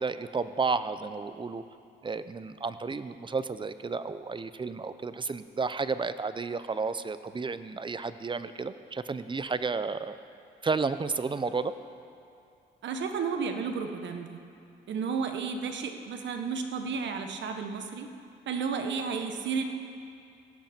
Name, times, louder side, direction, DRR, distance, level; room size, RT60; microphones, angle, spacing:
voice 1, 0.0-1.6 2.0-10.2 10.6-11.7, right 4 dB, 25° right, 12 dB, 0.6 m, -32 dB
voice 2, 12.8-14.4 14.9-18.1 18.5-19.6, right 5 dB, 65° right, 5 dB, 1.3 m, -32 dB
16.5 x 16.0 x 4.4 m, 2.5 s
cardioid pair, 90°, 20 cm